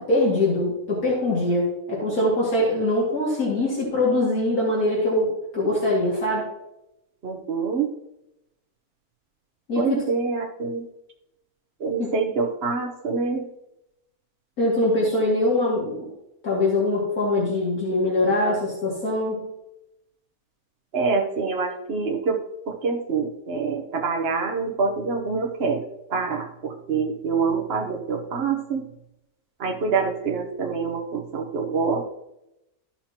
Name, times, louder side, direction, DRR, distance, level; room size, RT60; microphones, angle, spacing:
voice 1, 0.0-6.5 9.7-10.0 12.0-12.1 14.6-16.1 16.4-19.5, left 1 dB, 75° left, -5 dB, 2.7 m, -23 dB
voice 2, 7.2-7.9 9.8-10.8 11.8-13.5 20.9-28.9 29.6-32.0, right 5 dB, 45° right, 2 dB, 1.1 m, -26 dB
13.5 x 5.8 x 2.8 m, 0.87 s
omnidirectional pair, 1.6 m